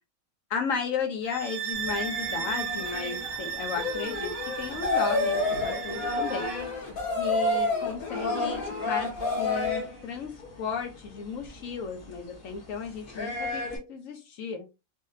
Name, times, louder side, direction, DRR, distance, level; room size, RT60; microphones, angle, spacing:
voice 1, 0.5-4.3 4.6-5.4 5.6-6.5 7.2-13.6 13.9-14.6, left 5 dB, 70° left, 3 dB, 1.2 m, -34 dB
sound 1, 1.2-6.6, right 8 dB, 70° right, 1.1 m, -35 dB
sound 2, 1.7-13.8, left 2 dB, 40° left, 1.0 m, -37 dB
sound 3, 3.7-9.9, left 3 dB, 90° left, 1.6 m, -29 dB
4.0 x 2.1 x 2.6 m, 0.26 s
omnidirectional pair, 1.5 m